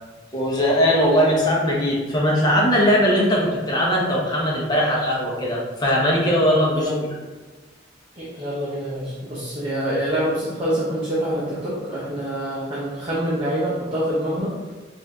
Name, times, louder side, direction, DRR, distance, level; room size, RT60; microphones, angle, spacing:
voice 1, 0.3-6.9, equal, 20° left, -4 dB, 1.0 m, -20 dB
voice 2, 8.2-14.5, equal, 25° right, -7 dB, 0.8 m, -26 dB
4.9 x 2.7 x 3.6 m, 1.3 s
head